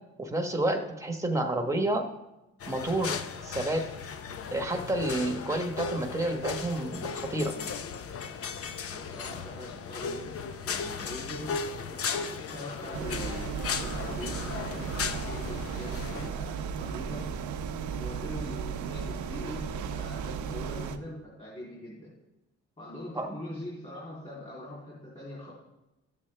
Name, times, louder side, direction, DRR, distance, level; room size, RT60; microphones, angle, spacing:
voice 1, 0.2-2.1 2.7-3.8 4.5-7.5 23.1-23.3, right 1 dB, 10° right, 4 dB, 1.2 m, -29 dB
sound 1, 2.6-16.3, left 6 dB, 50° left, 0.8 m, -36 dB
voice 2, 8.9-10.4 10.6-11.6 11.9-13.5 13.7-17.3 17.9-22.1 22.8-25.5, left 1 dB, 20° left, -7 dB, 3.1 m, -42 dB
sound 2, 12.9-21.0, right 6 dB, 70° right, 0.8 m, -35 dB
12.5 x 7.2 x 3.3 m, 0.96 s
cardioid pair, 90°, 30 cm